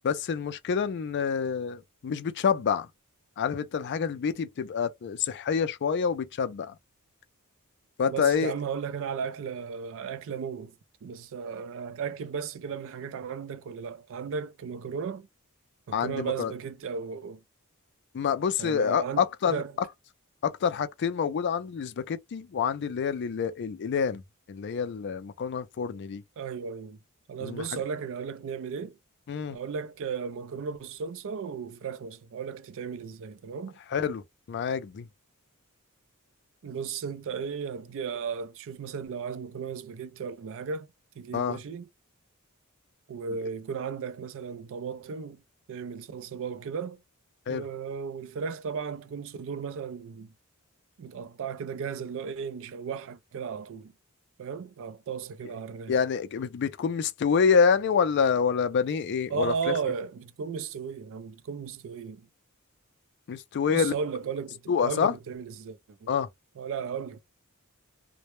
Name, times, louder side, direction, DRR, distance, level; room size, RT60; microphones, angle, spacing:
voice 1, 0.0-2.9 3.4-6.7 8.0-8.5 15.9-16.5 18.1-19.6 20.4-24.2 24.5-26.2 27.4-27.6 29.3-29.6 33.9-34.2 34.5-35.1 41.3-41.6 47.5-47.6 55.9-59.7 63.3-63.9 64.7-65.1 66.1-66.3, left 6 dB, 50° left, 0.4 m, -27 dB
voice 2, 8.0-10.8 11.0-15.3 15.9-17.4 18.6-19.2 19.5-19.7 26.4-27.0 27.3-29.0 29.5-33.8 36.6-40.9 41.2-41.9 43.1-45.4 45.7-47.0 47.5-50.3 51.0-53.9 54.4-56.0 59.3-62.3 63.7-66.1 66.6-67.2, right 6 dB, 60° right, 0.4 m, -35 dB
2.1 x 2.0 x 3.0 m
head